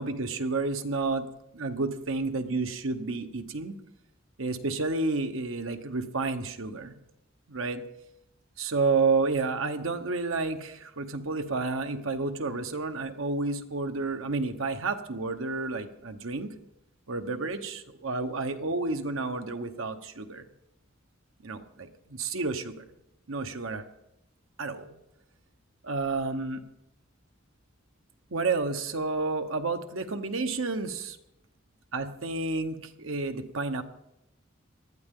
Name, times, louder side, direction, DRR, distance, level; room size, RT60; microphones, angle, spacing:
voice 1, 0.0-1.3 1.5-3.7 4.4-6.9 7.5-7.8 8.6-16.5 17.1-20.4 21.4-22.8 23.3-23.8 24.6-24.9 25.8-26.6 28.3-31.2 31.9-33.8, right 3 dB, 85° right, 7 dB, 1.1 m, -30 dB
19.0 x 12.5 x 3.8 m, 0.86 s
head